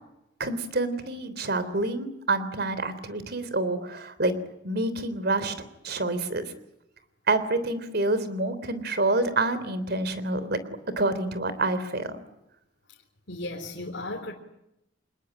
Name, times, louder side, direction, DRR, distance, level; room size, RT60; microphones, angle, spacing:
voice 1, 0.4-4.3 4.6-5.5 5.8-6.5 7.3-10.6 11.0-12.2, right 2 dB, 55° right, 3.5 m, -27 dB
voice 2, 13.3-14.3, left 2 dB, 65° left, 3.8 m, -35 dB
27.5 x 21.0 x 10.0 m
head